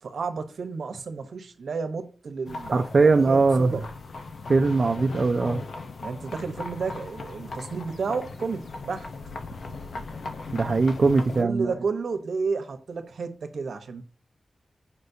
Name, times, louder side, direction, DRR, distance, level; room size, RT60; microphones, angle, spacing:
voice 1, 0.0-3.8 6.0-9.1 11.4-14.0, right 4 dB, 85° right, 1.0 m, -32 dB
sound 1, 2.5-11.4, left 3 dB, 75° left, 0.7 m, -38 dB
voice 2, 2.7-3.8 4.5-5.6 10.5-11.7, right 3 dB, 50° right, 0.5 m, -21 dB
7.9 x 5.2 x 2.7 m
wide cardioid pair, 90°, 0 cm